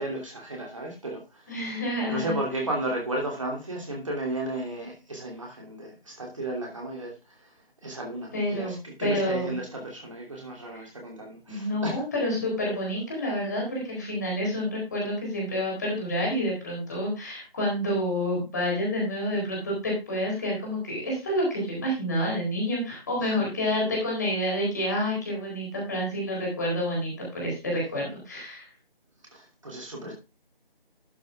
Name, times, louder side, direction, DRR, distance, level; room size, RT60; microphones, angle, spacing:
voice 1, 0.0-1.8 2.1-7.5 7.8-12.0 23.2-23.5 29.3-30.1, right 1 dB, 35° right, -1 dB, 2.9 m, -34 dB
voice 2, 1.5-2.4 8.3-8.8 9.0-9.6 11.5-28.7, equal, 20° left, -3 dB, 4.2 m, -28 dB
12.0 x 7.2 x 3.5 m, 0.29 s
figure-of-eight pair, 165°, 30 cm